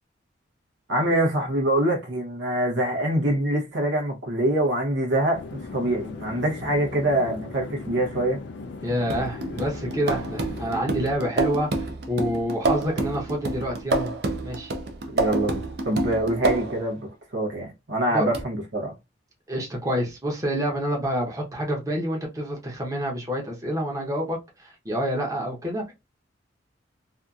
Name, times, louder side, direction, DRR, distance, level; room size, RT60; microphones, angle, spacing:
voice 1, 0.9-8.4 15.1-18.9, right 1 dB, 90° right, 0.8 m, -25 dB
sound 1, 5.3-10.8, left 3 dB, 70° left, 0.4 m, -38 dB
voice 2, 8.8-14.1 14.4-14.7 18.1-18.3 19.5-25.9, equal, 20° right, 0.8 m, -28 dB
sound 2, 9.1-16.9 18.3-18.4, right 3 dB, 60° right, 0.5 m, -28 dB
2.7 x 2.4 x 2.3 m
head